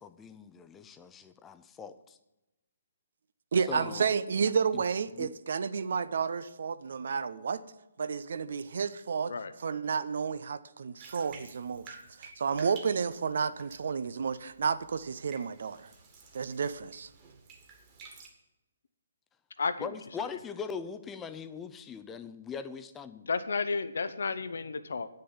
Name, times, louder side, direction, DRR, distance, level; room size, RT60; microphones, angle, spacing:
voice 1, 0.0-2.2 3.7-4.1 4.7-4.8 5.1-5.3 19.8-23.3, left 6 dB, 10° left, 10 dB, 0.6 m, -41 dB
voice 2, 3.5-7.6 8.0-9.3 9.6-15.9 16.3-17.1, right 6 dB, 55° right, 14 dB, 0.5 m, -31 dB
Bathtub (filling or washing), 11.0-18.3, right 5 dB, 25° right, 1.9 m, -52 dB
voice 3, 19.6-20.3 23.3-25.1, left 4 dB, 60° left, 12 dB, 0.7 m, -33 dB
9.3 x 6.6 x 8.6 m, 0.97 s
figure-of-eight pair, 135°, 0 cm